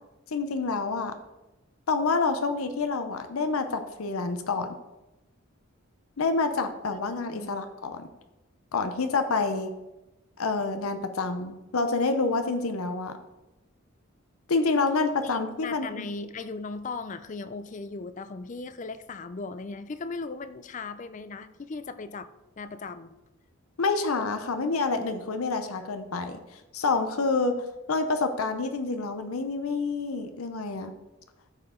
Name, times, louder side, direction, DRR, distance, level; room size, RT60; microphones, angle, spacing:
voice 1, 0.3-1.1 1.9-4.7 6.2-8.1 8.7-9.7 10.4-13.1 14.5-16.1 23.8-26.4 26.7-30.9, left 3 dB, 85° left, 8 dB, 0.7 m, -28 dB
voice 2, 6.9-7.6 15.2-22.3 22.6-23.1, left 3 dB, 35° left, 13 dB, 0.4 m, -38 dB
13.5 x 4.7 x 3.7 m, 1.0 s
head